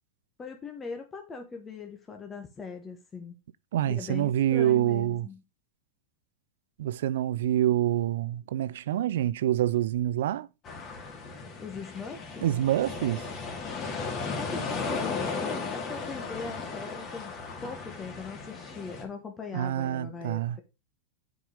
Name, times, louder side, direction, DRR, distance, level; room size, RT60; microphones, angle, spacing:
voice 1, 0.4-3.3 3.9-5.4 11.6-12.5 14.4-20.6, left 5 dB, 20° left, 1.4 m, -40 dB
voice 2, 3.7-5.3 6.8-10.5 12.4-13.3 19.5-20.6, right 12 dB, 75° right, 0.5 m, -26 dB
sound 1, 10.7-19.0, left 4 dB, 35° left, 2.5 m, -35 dB
7.8 x 5.2 x 5.0 m
hypercardioid pair, 110°, 0 cm